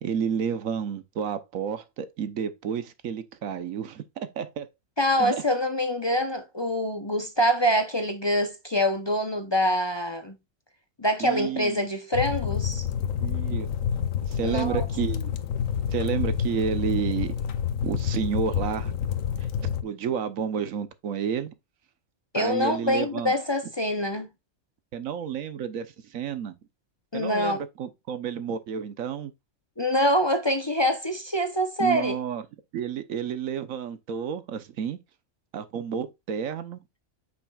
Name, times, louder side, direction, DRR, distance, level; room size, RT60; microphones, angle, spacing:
voice 1, 0.0-4.7 5.2-5.4 11.2-11.8 13.2-13.7 14.2-15.3 15.9-17.3 17.8-18.9 19.8-21.5 22.3-23.3 24.9-26.6 27.1-29.3 31.8-32.4 32.7-35.0 35.5-36.8, right 7 dB, 90° right, 1.3 m, -30 dB
voice 2, 5.0-10.3 11.0-12.9 14.4-14.8 22.3-24.3 27.1-27.6 29.8-32.2, equal, 25° left, 0.7 m, -25 dB
sound 1, 12.1-19.8, left 8 dB, 90° left, 1.2 m, -28 dB
8.0 x 6.1 x 2.3 m
omnidirectional pair, 1.4 m